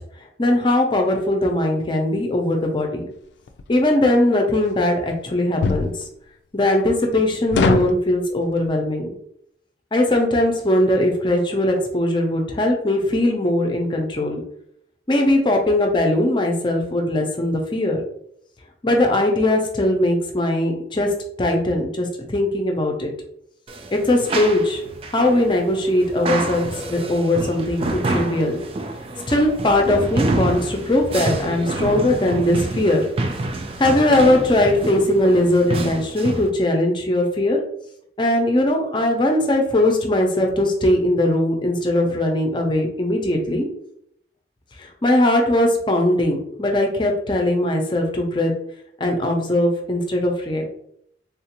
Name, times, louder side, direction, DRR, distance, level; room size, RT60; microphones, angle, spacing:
voice 1, 0.4-3.1 3.7-5.9 6.5-9.1 9.9-14.4 15.1-18.0 18.8-21.1 21.4-23.1 23.9-24.8 25.1-28.6 29.3-33.0 33.8-37.6 38.2-43.7 44.8-48.5 49.0-50.7, left 1 dB, 25° left, 2 dB, 0.5 m, -20 dB
sound 1, 3.5-3.7 5.6-5.9 7.5-8.0, left 4 dB, 85° left, 0.3 m, -19 dB
sound 2, 23.7-36.5, right 2 dB, 30° right, 0.3 m, -28 dB
3.5 x 2.4 x 2.9 m, 0.71 s
head